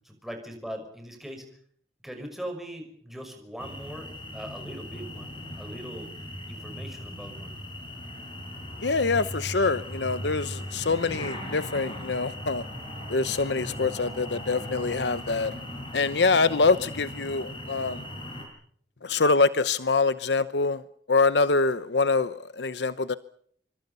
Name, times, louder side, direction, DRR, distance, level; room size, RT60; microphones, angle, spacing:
voice 1, 0.0-1.5 2.0-7.5, equal, ahead, 4 dB, 5.8 m, -40 dB
sound 1, 3.6-18.5, left 1 dB, 30° left, 7.4 m, -39 dB
sound 2, 6.8-14.9 15.3-15.5 15.7-15.8 16.1-16.4, equal, 50° left, 5.5 m, -44 dB
voice 2, 8.8-12.6 13.1-15.5 15.9-18.0 19.0-20.8 21.1-23.1, left 4 dB, 80° left, 14 dB, 0.9 m, -25 dB
27.0 x 24.5 x 5.6 m, 0.63 s
head